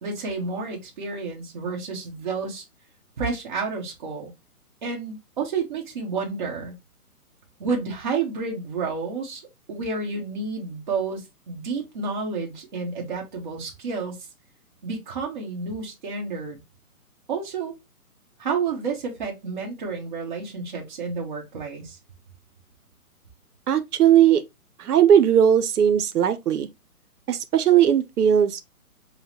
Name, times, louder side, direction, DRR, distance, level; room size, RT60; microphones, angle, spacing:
voice 1, 0.0-2.6 3.2-4.3 4.8-6.7 7.6-9.4 9.7-14.1 14.8-16.6 17.3-17.7 18.4-22.0, right 4 dB, 30° right, 1.0 m, -30 dB
voice 2, 23.7-24.4 24.8-26.7 27.3-28.6, right 9 dB, 90° right, 0.7 m, -18 dB
5.5 x 2.1 x 2.8 m
hypercardioid pair, 160°, 44 cm